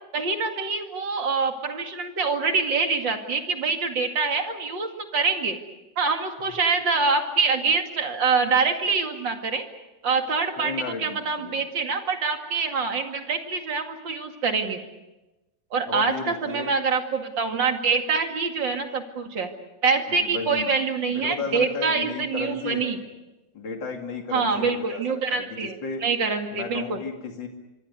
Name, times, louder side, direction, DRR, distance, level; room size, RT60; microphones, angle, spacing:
voice 1, 0.1-5.6 6.0-9.6 10.0-10.7 11.0-14.8 15.7-19.5 19.8-23.0 24.3-27.0, right 4 dB, 70° right, 5 dB, 3.0 m, -25 dB
voice 2, 10.6-11.6 15.9-16.7 20.1-20.7 21.1-23.0 23.5-26.0 26.5-27.5, left 4 dB, 70° left, 3 dB, 3.0 m, -34 dB
26.0 x 24.0 x 6.8 m, 1.0 s
omnidirectional pair, 2.1 m